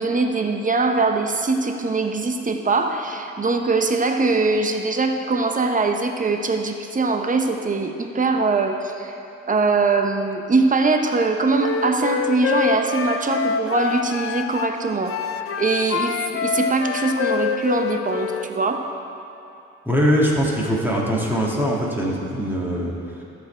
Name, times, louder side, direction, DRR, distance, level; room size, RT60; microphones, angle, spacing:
voice 1, 0.0-9.1 9.5-15.2 15.6-18.8, right 3 dB, 25° right, 5 dB, 0.9 m, -22 dB
Wind instrument woodwind instrument, 11.6-14.8 15.1-18.5, left 7 dB, 50° left, 0.6 m, -26 dB
voice 2, 19.8-23.2, equal, 5° right, -4 dB, 2.0 m, -22 dB
13.0 x 6.8 x 4.5 m, 2.7 s
cardioid pair, 90°, 30 cm